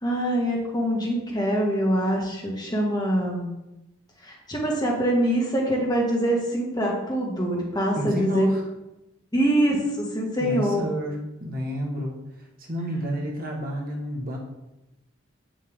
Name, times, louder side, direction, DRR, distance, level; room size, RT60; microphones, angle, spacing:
voice 1, 0.0-3.5 4.2-8.5 9.3-10.8, right 1 dB, 20° left, -2 dB, 1.9 m, -24 dB
voice 2, 7.9-8.6 10.4-14.4, equal, 45° right, -1 dB, 1.4 m, -30 dB
9.2 x 7.5 x 3.6 m, 0.97 s
head